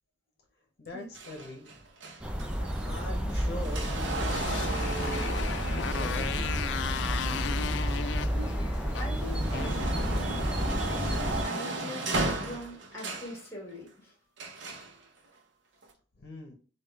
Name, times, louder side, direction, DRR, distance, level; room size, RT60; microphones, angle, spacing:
voice 1, 0.8-1.8 2.8-5.3 5.8-6.6 16.2-16.5, left 1 dB, 55° left, 1 dB, 0.7 m, -42 dB
sound 1, 1.1-8.3 8.8-13.4 14.4-14.9 15.8-15.9, right 2 dB, 85° right, 0.7 m, -36 dB
sound 2, 2.2-11.4, equal, 5° right, 0.3 m, -31 dB
Motorcycle, 4.0-10.5, left 7 dB, 75° left, 0.3 m, -36 dB
voice 2, 8.3-10.8 11.3-14.2, left 1 dB, 15° left, -2 dB, 1.4 m, -43 dB
4.8 x 2.3 x 2.3 m, 0.40 s
head